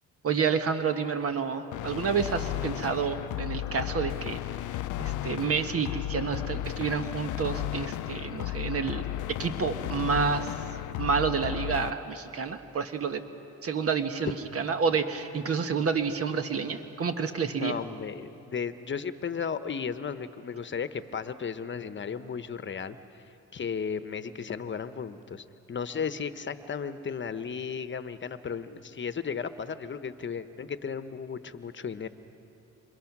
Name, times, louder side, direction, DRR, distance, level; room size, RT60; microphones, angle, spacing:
voice 1, 0.2-4.4 5.0-9.0 9.4-10.5 11.0-13.2 13.6-17.7, right 6 dB, 50° right, 8 dB, 1.3 m, -29 dB
sound 1, 1.7-11.9, left 14 dB, 80° left, 0.6 m, -34 dB
voice 2, 17.6-23.2 23.5-32.1, left 6 dB, 40° left, 12 dB, 1.0 m, -35 dB
27.5 x 27.0 x 6.1 m, 2.9 s
cardioid pair, 90°, 30 cm